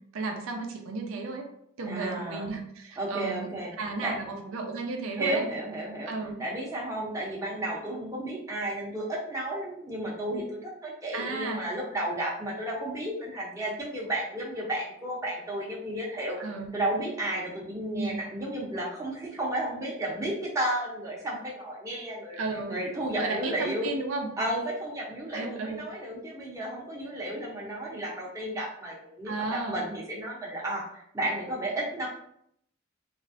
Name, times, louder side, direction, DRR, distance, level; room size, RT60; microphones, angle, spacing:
voice 1, 0.1-1.5 1.8-3.5 3.8-5.4 6.1-6.4 11.1-11.7 16.4-16.7 18.0-18.2 22.4-22.8 23.2-24.3 25.3-25.9 29.3-29.8, right 3 dB, 70° right, 2 dB, 0.4 m, -33 dB
voice 2, 1.9-2.5 3.0-3.7 4.0-4.1 5.2-6.1 6.4-16.4 16.7-22.4 22.7-23.9 24.4-32.1, right 1 dB, 15° right, -4 dB, 0.6 m, -33 dB
3.1 x 2.5 x 2.5 m, 0.71 s
head